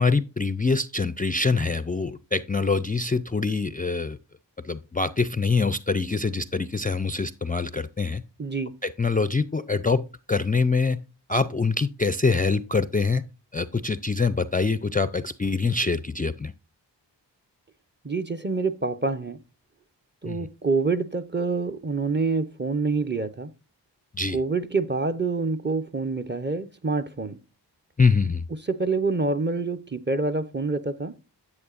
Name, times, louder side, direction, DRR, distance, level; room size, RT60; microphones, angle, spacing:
voice 1, 0.0-4.2 4.6-8.2 8.8-11.0 11.3-13.2 13.5-16.5 20.3-20.4 24.1-24.4 28.0-28.5, left 4 dB, 20° left, 0.4 m, -24 dB
voice 2, 8.4-8.7 18.0-19.4 20.2-23.5 24.3-27.4 28.7-31.1, right 3 dB, 25° right, 0.7 m, -26 dB
9.6 x 8.1 x 2.4 m
cardioid pair, 40°, 44 cm